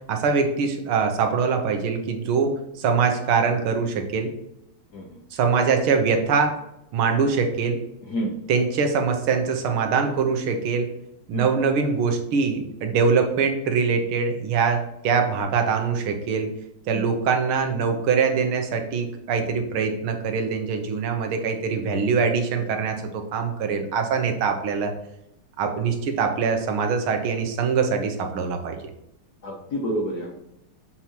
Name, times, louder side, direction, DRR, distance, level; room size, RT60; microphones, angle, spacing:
voice 1, 0.1-4.3 5.3-6.6 6.9-7.8 8.5-10.9 11.3-16.5 16.9-24.9 25.6-28.8, right 5 dB, 75° right, 5 dB, 1.9 m, -23 dB
voice 2, 8.0-8.3 11.3-11.5 29.4-30.3, equal, 55° left, -1 dB, 1.4 m, -29 dB
6.8 x 5.9 x 3.0 m, 0.85 s
omnidirectional pair, 2.4 m